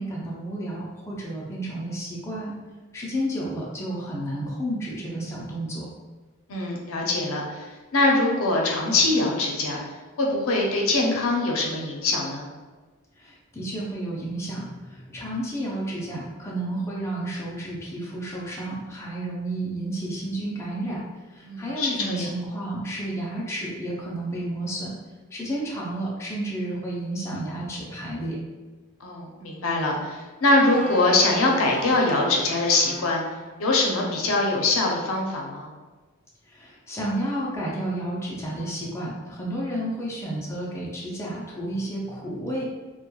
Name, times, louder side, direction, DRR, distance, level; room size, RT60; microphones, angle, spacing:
voice 1, 0.0-2.5 2.9-5.9 13.2-14.7 14.9-21.0 21.4-24.9 25.3-28.4 36.5-42.6, right 1 dB, 15° left, -5 dB, 0.4 m, -31 dB
voice 2, 6.5-9.8 10.2-12.5 21.4-22.3 29.0-33.2 33.6-35.7, left 2 dB, 85° left, 0 dB, 0.5 m, -23 dB
sound 1, 30.6-33.8, right 3 dB, 10° right, 1.3 m, -40 dB
2.9 x 2.2 x 2.2 m, 1.3 s
head